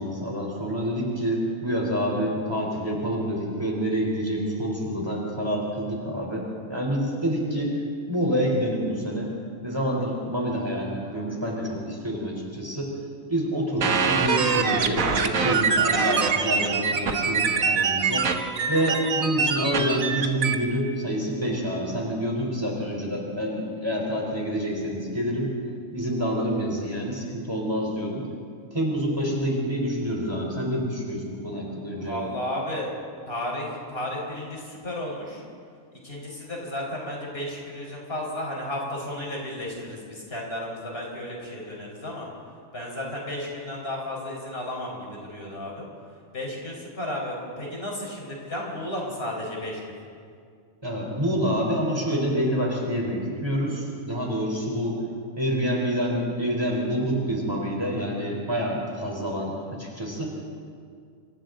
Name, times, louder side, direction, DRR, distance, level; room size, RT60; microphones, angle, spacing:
voice 1, 0.0-7.8 8.1-9.3 9.6-12.9 13.3-18.2 18.7-25.5 25.9-28.2 28.7-32.2 50.8-55.0 55.4-60.4, equal, 15° right, -2 dB, 4.0 m, -27 dB
sound 1, 13.8-20.5, right 5 dB, 75° right, 1.6 m, -24 dB
voice 2, 31.9-32.9 33.3-35.4 36.0-42.3 42.7-45.9 46.3-49.9, left 1 dB, 45° left, -2 dB, 5.0 m, -33 dB
27.5 x 26.0 x 3.9 m, 2.2 s
omnidirectional pair, 1.4 m